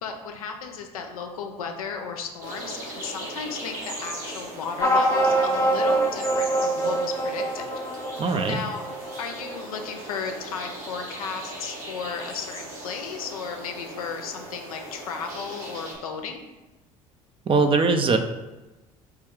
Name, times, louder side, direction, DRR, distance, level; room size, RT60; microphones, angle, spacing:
voice 1, 0.0-7.6 8.5-8.8 9.2-16.4, left 5 dB, 80° left, 4 dB, 0.5 m, -34 dB
sound 1, 2.4-15.9, right 1 dB, 75° right, 1.3 m, -39 dB
sound 2, 4.8-9.8, right 1 dB, 15° left, 0.6 m, -24 dB
voice 2, 8.2-8.6 17.5-18.2, right 4 dB, 30° right, 7 dB, 0.4 m, -21 dB
4.6 x 2.2 x 3.6 m, 1.1 s
figure-of-eight pair, 60°, 18 cm